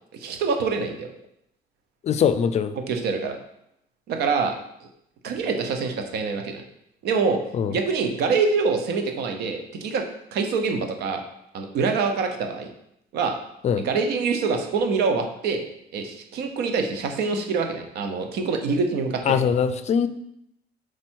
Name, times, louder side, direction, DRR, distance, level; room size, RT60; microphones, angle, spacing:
voice 1, 0.1-1.1 2.9-3.4 4.1-4.6 4.8-4.9 5.2-6.6 7.0-7.4 7.7-10.0 10.3-11.2 11.5-12.7 13.1-13.4 13.8-15.6 15.9-19.4, right 4 dB, 80° right, 5 dB, 0.8 m, -25 dB
voice 2, 2.0-2.7 7.5-7.7 13.6-13.9 19.3-20.1, left 7 dB, 40° left, 12 dB, 0.4 m, -22 dB
4.8 x 4.3 x 4.5 m, 0.77 s
cardioid pair, 110°, 17 cm